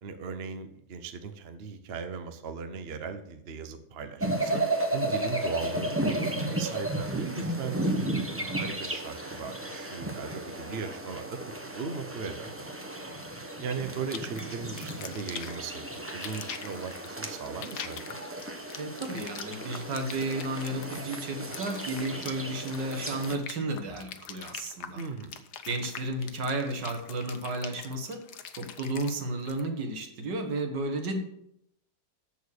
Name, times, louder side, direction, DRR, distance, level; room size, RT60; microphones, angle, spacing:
voice 1, 0.0-4.6 4.9-8.0 8.6-12.5 13.6-15.8 16.1-18.2 24.9-25.4, right 5 dB, 45° right, 8 dB, 0.9 m, -38 dB
sound 1, 4.2-23.4, right 1 dB, 10° right, 0.6 m, -34 dB
sound 2, 14.1-29.6, left 8 dB, 70° left, 1.3 m, -43 dB
voice 2, 18.8-25.0 25.7-28.2 28.6-31.2, right 2 dB, 75° right, 5 dB, 2.1 m, -33 dB
13.5 x 4.6 x 6.5 m, 0.77 s
omnidirectional pair, 1.9 m